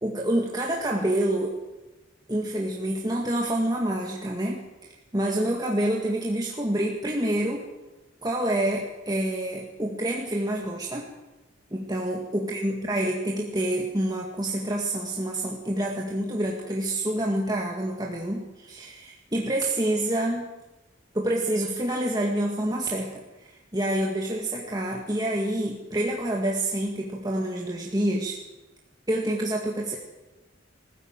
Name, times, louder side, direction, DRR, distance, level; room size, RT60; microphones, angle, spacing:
voice 1, 0.0-1.6 2.3-4.6 5.1-7.6 8.2-11.1 11.7-20.5 21.1-28.4 29.1-30.0, right 1 dB, 20° right, -1 dB, 1.9 m, -27 dB
20.5 x 14.5 x 9.1 m, 1.1 s
head